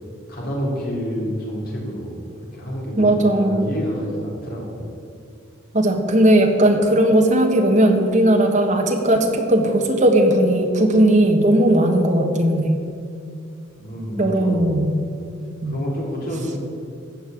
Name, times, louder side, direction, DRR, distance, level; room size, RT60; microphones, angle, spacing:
voice 1, 0.3-4.8 13.8-14.8 15.7-16.6, equal, 50° left, -4 dB, 3.8 m, -28 dB
voice 2, 3.0-3.7 5.7-12.8 14.2-14.9 15.6-15.8, right 1 dB, 35° right, 3 dB, 1.4 m, -17 dB
14.5 x 5.6 x 8.9 m, 2.4 s
head